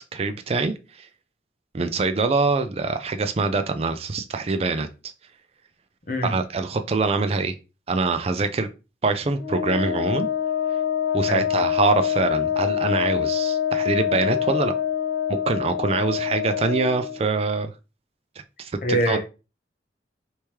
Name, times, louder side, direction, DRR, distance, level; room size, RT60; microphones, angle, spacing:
voice 1, 0.1-1.1 1.7-5.1 6.2-7.6 7.9-8.7 9.0-10.3 11.1-14.7 15.5-17.7 18.6-18.7 19.1-19.2, right 3 dB, 35° right, 0.4 m, -24 dB
Wind instrument woodwind instrument, 9.4-17.2, left 9 dB, 85° left, 0.7 m, -25 dB
voice 2, 18.8-19.2, equal, 45° left, 0.8 m, -24 dB
3.4 x 3.1 x 2.9 m
head